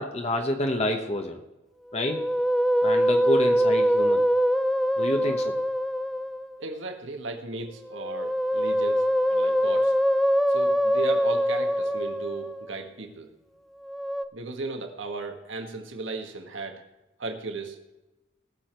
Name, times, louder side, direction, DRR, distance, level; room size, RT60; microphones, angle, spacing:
voice 1, 0.0-1.4 1.9-2.3 2.8-4.2 5.0-5.6, left 1 dB, 35° left, 4 dB, 1.0 m, -28 dB
Musical instrument, 1.9-6.6 7.9-12.7 13.8-14.2, equal, ahead, 0.4 m, -24 dB
voice 2, 5.0-5.4 6.6-9.9 10.5-13.3 14.3-16.8 17.2-17.8, right 3 dB, 75° right, 4 dB, 1.7 m, -36 dB
18.5 x 7.2 x 4.5 m, 1.0 s
head